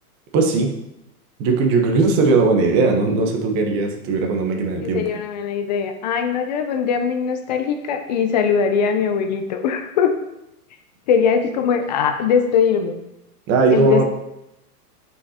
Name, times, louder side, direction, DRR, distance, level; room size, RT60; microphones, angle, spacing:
voice 1, 0.3-0.7 1.4-5.0 13.5-14.0, right 3 dB, 30° right, 2 dB, 1.0 m, -18 dB
voice 2, 4.8-10.1 11.1-13.0 13.7-14.0, left 7 dB, 30° left, 6 dB, 0.4 m, -21 dB
9.4 x 5.6 x 2.8 m, 0.87 s
hypercardioid pair, 145°, 47 cm